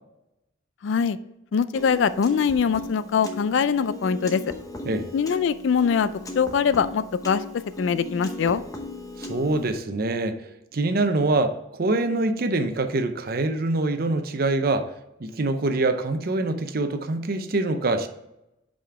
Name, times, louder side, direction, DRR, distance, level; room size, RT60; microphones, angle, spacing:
voice 1, 0.8-1.2 1.5-4.4 5.1-6.1 6.4-7.4 7.8-8.6, left 6 dB, 65° left, 0.3 m, -22 dB
Piano, 1.7-9.8, left 2 dB, 15° left, 0.7 m, -37 dB
voice 2, 9.2-14.9 15.2-18.1, right 2 dB, 50° right, 0.6 m, -25 dB
5.7 x 5.1 x 4.6 m
head